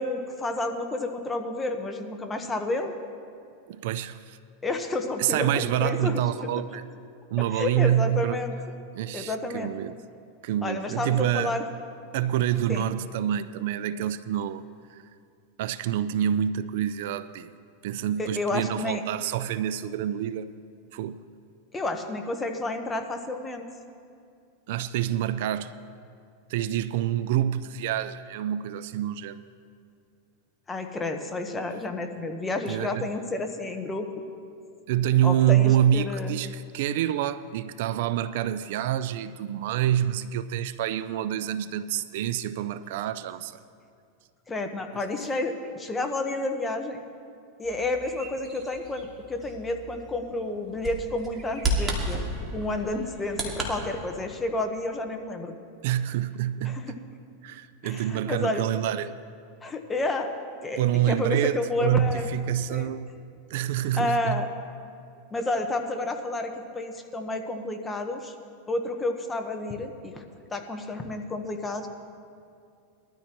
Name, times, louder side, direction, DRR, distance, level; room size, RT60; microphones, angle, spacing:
voice 1, 0.0-2.9 4.6-6.2 7.5-8.5 9.1-9.7 10.6-11.6 12.7-12.9 18.2-19.0 21.7-23.7 30.7-34.1 35.2-36.4 44.5-47.0 47.6-52.2 52.5-55.5 56.6-57.0 57.8-58.6 59.6-60.3 60.6-62.9 64.0-64.5 65.3-68.3 68.7-70.2 70.5-71.9, left 2 dB, 15° left, 1.1 m, -30 dB
voice 2, 3.7-4.4 5.2-6.8 7.3-8.4 9.0-9.9 10.4-11.6 12.1-14.6 14.9-15.1 15.6-17.5 17.8-20.5 20.9-21.2 24.7-25.7 26.5-29.4 32.7-33.1 34.9-43.6 55.8-56.8 57.4-59.1 60.8-63.1 63.5-64.5, right 11 dB, 65° right, 0.4 m, -27 dB
Bird vocalization bird call bird song, 47.6-53.7, right 1 dB, 25° right, 2.3 m, -33 dB
21.0 x 13.0 x 3.0 m
supercardioid pair, 130°, 0 cm